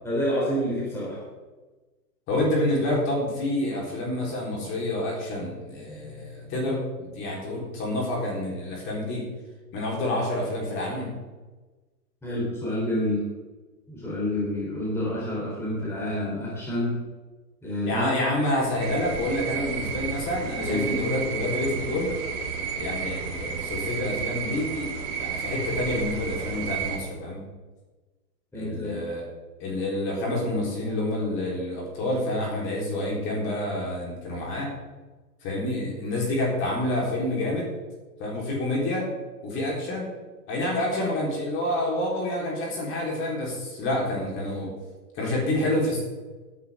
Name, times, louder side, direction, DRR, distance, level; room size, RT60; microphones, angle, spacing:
voice 1, 0.0-1.2 12.2-13.3 13.9-17.0 17.6-18.1 20.7-20.9 28.5-29.0, left 1 dB, 5° left, -6 dB, 3.6 m, -28 dB
voice 2, 2.3-9.3 9.7-11.1 17.9-22.1 22.8-27.4 28.5-29.3 29.6-34.7 35.4-37.7 38.2-39.1 39.4-40.1 40.5-44.7 45.1-46.0, left 1 dB, 25° left, -3 dB, 4.0 m, -28 dB
sound 1, 18.8-27.0, right 6 dB, 35° right, 2.8 m, -32 dB
17.0 x 9.9 x 3.7 m, 1.2 s
hypercardioid pair, 145°, 49 cm